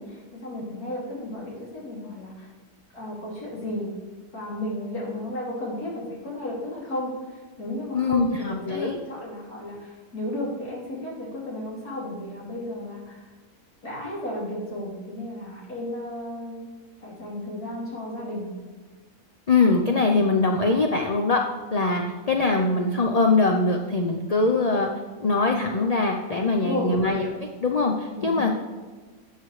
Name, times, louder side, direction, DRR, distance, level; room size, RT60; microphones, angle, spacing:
voice 1, 0.0-2.5 2.9-3.9 4.3-13.2 13.8-16.7 17.0-18.5 26.5-26.9 28.2-28.5, left 1 dB, 75° left, -5 dB, 3.1 m, -33 dB
voice 2, 7.9-9.0 19.5-21.4 21.7-24.9 25.2-28.5, left 3 dB, 40° left, 2 dB, 0.5 m, -22 dB
12.5 x 8.3 x 3.2 m, 1.3 s
omnidirectional pair, 1.6 m